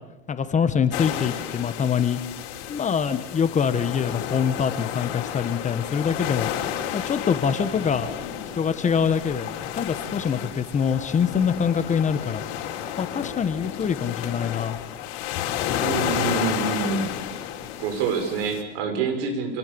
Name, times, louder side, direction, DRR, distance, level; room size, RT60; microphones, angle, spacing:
voice 1, 0.3-2.2 2.7-6.5 6.9-8.1 8.5-12.4 13.0-14.8, left 7 dB, 20° left, 11 dB, 1.5 m, -24 dB
sound 1, 0.9-18.6, left 10 dB, 65° left, 4.2 m, -31 dB
voice 2, 15.8-17.1 17.8-19.6, right 5 dB, 65° right, 6 dB, 6.6 m, -26 dB
27.5 x 19.0 x 7.1 m, 1.0 s
supercardioid pair, 125°, 32 cm